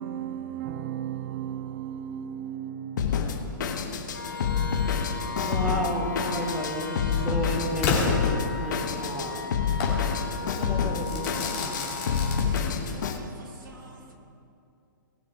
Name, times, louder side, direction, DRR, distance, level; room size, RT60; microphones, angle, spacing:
voice 1, 0.0-4.9 5.2-5.4, right 9 dB, 40° right, 0.5 m, -37 dB
Drum kit, 3.0-13.2, left 7 dB, 60° left, 1.2 m, -28 dB
sound 1, 4.1-12.4, left 3 dB, 90° left, 2.4 m, -38 dB
voice 2, 5.4-9.4 10.4-11.9, right 1 dB, 5° right, 2.3 m, -32 dB
Crackle / Fireworks, 7.8-9.0 9.8-10.0 11.0-13.0, left 4 dB, 40° left, 2.7 m, -30 dB
voice 3, 12.5-14.1, right 1 dB, 70° right, 2.4 m, -47 dB
19.5 x 6.6 x 4.8 m
hypercardioid pair, 130°, 11 cm